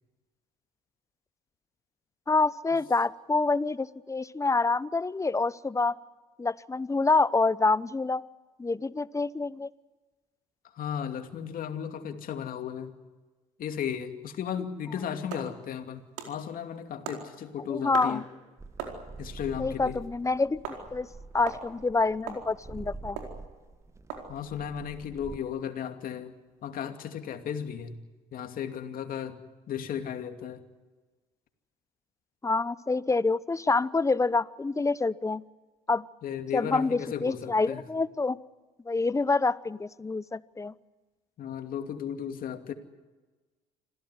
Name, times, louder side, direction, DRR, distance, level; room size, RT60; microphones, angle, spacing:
voice 1, 2.3-5.9 6.4-8.2 8.6-9.7 17.7-18.2 19.6-20.6 20.9-21.1 21.3-23.2 32.4-35.4 35.9-36.0 36.5-38.4 38.9-40.7, left 3 dB, 20° left, 18 dB, 0.9 m, -27 dB
voice 2, 10.7-12.9 13.6-18.2 19.2-20.0 24.3-28.0 28.3-29.4 29.7-30.6 36.2-37.8 41.4-42.7, left 8 dB, 55° left, 6 dB, 2.6 m, -35 dB
sound 1, 15.3-26.8, right 6 dB, 80° right, 4.4 m, -44 dB
sound 2, 18.6-25.4, right 3 dB, 15° right, 1.4 m, -46 dB
27.0 x 16.0 x 9.8 m, 1.2 s
hypercardioid pair, 65°, 17 cm